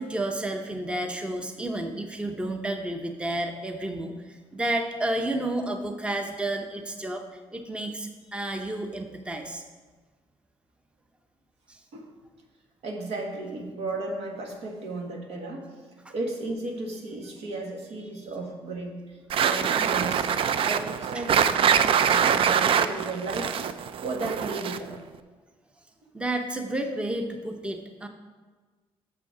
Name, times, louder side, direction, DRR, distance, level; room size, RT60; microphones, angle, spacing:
voice 1, 0.0-7.2 7.5-9.6 11.7-11.8 16.0-16.1 20.5-20.7 21.1-21.2 21.8-22.2 26.1-28.1, right 1 dB, 10° right, 4 dB, 0.7 m, -31 dB
voice 2, 12.8-15.7 16.1-20.3 20.6-23.6 24.0-24.9, right 2 dB, 80° right, 1 dB, 1.5 m, -34 dB
sound 1, 19.3-25.0, right 8 dB, 60° right, 0.4 m, -24 dB
6.8 x 6.7 x 4.9 m, 1.4 s
cardioid pair, 100°, 11 cm